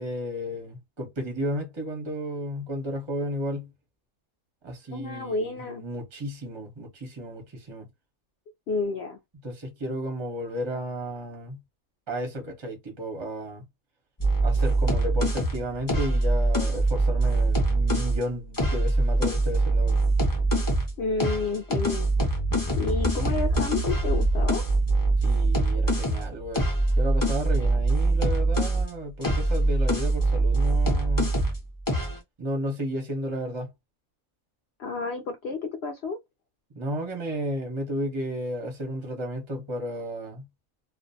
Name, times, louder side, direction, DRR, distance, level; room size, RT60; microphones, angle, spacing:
voice 1, 0.0-3.7 4.6-7.9 9.4-11.6 12.1-13.6 14.4-20.0 25.2-26.7 27.0-31.3 32.4-33.7 36.7-40.4, equal, 30° right, 0.5 m, -33 dB
voice 2, 4.9-5.8 8.7-9.2 21.0-22.1 22.8-24.6 34.8-36.2, left 3 dB, 70° left, 0.6 m, -30 dB
sound 1, 14.2-18.2 18.5-20.9 21.2-28.9 29.2-31.6 31.9-32.2, right 2 dB, 25° left, 0.4 m, -23 dB
2.5 x 2.2 x 2.6 m
omnidirectional pair, 1.6 m